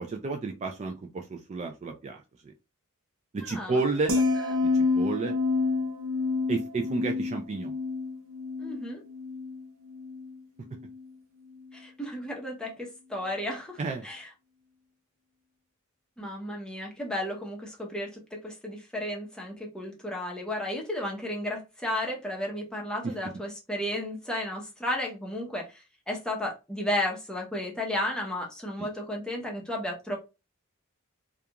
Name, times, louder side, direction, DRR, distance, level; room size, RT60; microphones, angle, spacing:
voice 1, 0.0-2.5 3.3-4.2 4.7-5.4 6.5-7.7 13.8-14.1 23.0-23.3 28.8-28.9, right 3 dB, 30° right, 0.3 m, -31 dB
voice 2, 3.5-3.8 8.6-9.0 11.7-14.3 16.2-30.2, left 1 dB, 5° left, 0.8 m, -33 dB
sound 1, 4.1-10.4 10.7-11.0, left 3 dB, 65° right, 0.6 m, -29 dB
2.4 x 2.3 x 2.8 m
head